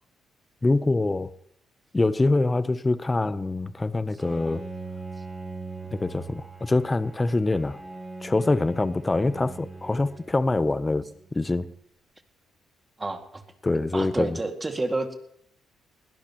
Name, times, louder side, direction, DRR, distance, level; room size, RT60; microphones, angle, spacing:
voice 1, 0.6-1.3 1.9-4.7 5.9-7.8 8.2-11.7 13.6-14.4, left 2 dB, 20° left, 0.7 m, -25 dB
Bowed string instrument, 4.2-11.3, right 3 dB, ahead, 5.7 m, -41 dB
voice 2, 13.0-13.4 13.9-15.1, right 2 dB, 20° right, 2.1 m, -29 dB
21.0 x 16.5 x 3.0 m
cardioid pair, 90°, 0 cm